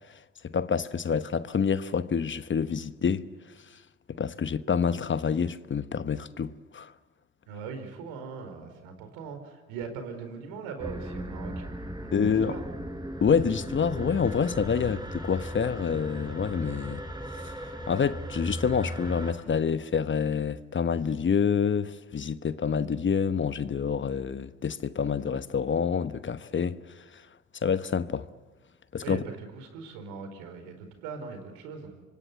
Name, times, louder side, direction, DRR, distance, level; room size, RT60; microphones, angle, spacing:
voice 1, 0.4-3.3 3.7-3.8 4.1-6.9 12.1-12.5 13.2-17.0 17.4-17.5 17.9-27.2 27.6-28.3 28.9-29.2, left 6 dB, 35° left, 1.1 m, -27 dB
voice 2, 7.5-11.7 12.0-12.7 29.0-31.9, right 5 dB, 80° right, 4.3 m, -40 dB
sound 1, 10.8-19.3, right 1 dB, 10° right, 5.0 m, -37 dB
26.5 x 23.5 x 9.5 m
hypercardioid pair, 55°, 34 cm